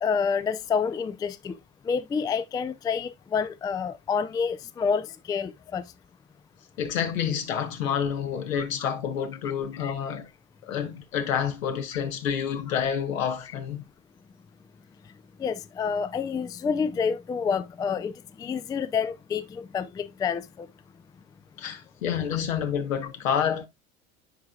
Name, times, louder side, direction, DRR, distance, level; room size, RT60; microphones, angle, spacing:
voice 1, 0.0-1.6 1.8-5.8 8.5-8.9 9.8-9.9 15.4-20.7, left 6 dB, 10° left, 0.3 m, -28 dB
voice 2, 6.8-10.3 10.6-13.8 21.6-23.7, left 8 dB, 75° left, 1.3 m, -28 dB
9.9 x 4.8 x 2.3 m
hypercardioid pair, 75°, 40 cm